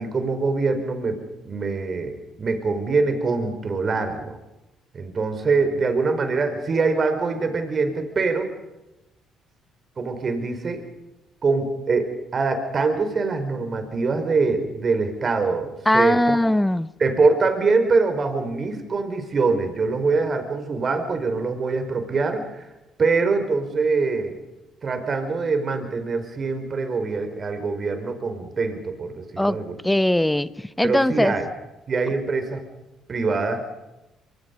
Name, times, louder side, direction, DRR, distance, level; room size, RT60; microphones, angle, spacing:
voice 1, 0.0-4.4 4.9-8.5 10.0-10.8 11.4-16.4 17.0-22.7 23.0-24.4 24.8-29.8 30.8-31.5 31.9-32.6 33.1-33.6, right 4 dB, 45° right, 7 dB, 4.9 m, -24 dB
voice 2, 15.9-16.9 29.4-29.6 29.8-31.3, left 1 dB, 10° left, 16 dB, 1.0 m, -20 dB
24.5 x 24.0 x 5.4 m, 0.98 s
hypercardioid pair, 55°, 0 cm